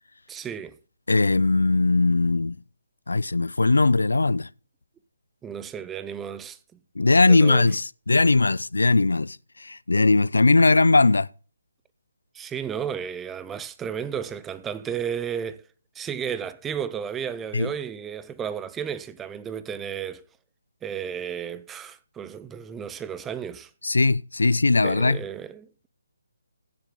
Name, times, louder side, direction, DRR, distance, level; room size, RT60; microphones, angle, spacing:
voice 1, 0.3-0.8 5.4-6.6 7.3-7.7 12.3-15.6 16.0-20.3 20.8-23.7 24.8-25.9, right 8 dB, 10° right, 0.5 m, -33 dB
voice 2, 1.1-2.6 3.1-4.5 7.0-11.3 17.5-17.7 23.8-25.2, left 3 dB, 85° left, 0.4 m, -20 dB
15.5 x 7.2 x 3.6 m
figure-of-eight pair, 155°, 0 cm